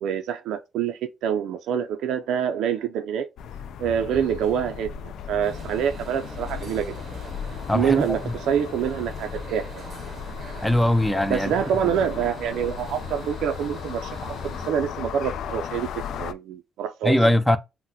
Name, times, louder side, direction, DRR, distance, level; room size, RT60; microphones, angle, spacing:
voice 1, 0.0-3.3 3.8-6.9 7.7-9.8 11.3-17.2, right 8 dB, 85° right, 0.3 m, -26 dB
sound 1, 3.4-16.3, left 8 dB, 75° left, 0.3 m, -36 dB
sound 2, 5.4-14.7, right 4 dB, 45° right, 0.6 m, -42 dB
voice 2, 7.7-8.3 10.6-11.5 11.8-11.9 17.0-17.6, left 1 dB, 5° left, 0.4 m, -21 dB
3.8 x 2.0 x 2.6 m
cardioid pair, 90°, 0 cm